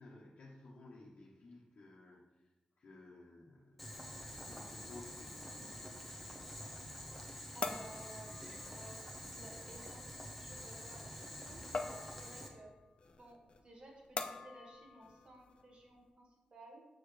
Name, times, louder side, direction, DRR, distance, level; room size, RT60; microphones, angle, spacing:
voice 1, 0.0-4.0 4.3-6.0, left 2 dB, 65° left, -5 dB, 1.2 m, -56 dB
Boiling, 3.8-12.5, equal, ahead, 1.0 m, -48 dB
sound 1, 5.3-16.1, left 4 dB, 45° left, 0.5 m, -48 dB
voice 2, 7.5-8.4 8.7-12.8 13.2-16.9, right 1 dB, 45° right, -1 dB, 1.6 m, -56 dB
6.7 x 6.6 x 3.3 m, 1.1 s
wide cardioid pair, 140°, 3 cm